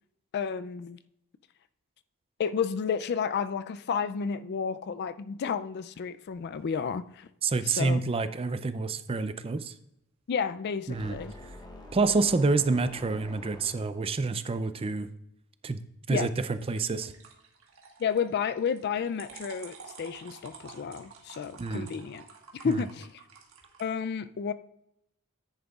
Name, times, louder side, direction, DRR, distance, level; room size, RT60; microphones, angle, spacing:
voice 1, 0.3-1.0 2.4-7.3 7.7-8.0 10.3-11.3 16.1-16.3 18.0-22.2 22.5-23.1 23.8-24.5, left 6 dB, 50° left, 0.3 m, -31 dB
sound 1, 6.3-6.9 16.5-23.8, right 4 dB, 70° right, 1.5 m, -50 dB
voice 2, 7.4-9.7 10.9-11.2 11.9-15.1 15.6-15.8 16.1-17.1 21.6-21.9 22.6-22.8, right 3 dB, 25° right, 0.4 m, -28 dB
sound 2, 10.9-14.2, left 1 dB, 20° left, 0.9 m, -47 dB
10.0 x 8.9 x 2.4 m
head